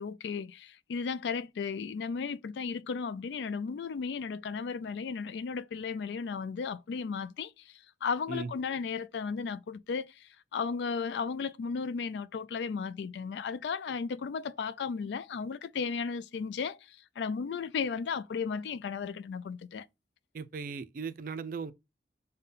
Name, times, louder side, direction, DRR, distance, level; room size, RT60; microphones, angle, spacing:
voice 1, 0.0-19.9, left 5 dB, 75° left, 0.3 m, -35 dB
voice 2, 20.3-21.7, right 5 dB, 50° right, 0.3 m, -37 dB
5.5 x 2.2 x 3.7 m
head